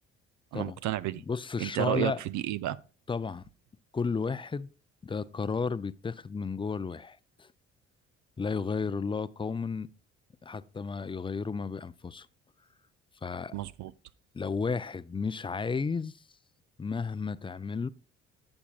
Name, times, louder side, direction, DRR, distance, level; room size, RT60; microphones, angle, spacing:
voice 1, 0.5-1.2 1.6-2.8 13.5-13.9, right 15 dB, 60° right, 0.5 m, -31 dB
voice 2, 1.2-2.2 3.1-3.4 3.9-4.7 5.0-7.5 8.4-9.9 10.4-12.3 13.2-13.5 14.3-16.2 16.8-17.9, left 5 dB, 15° left, 0.4 m, -33 dB
14.0 x 7.0 x 2.4 m
hypercardioid pair, 55°, 33 cm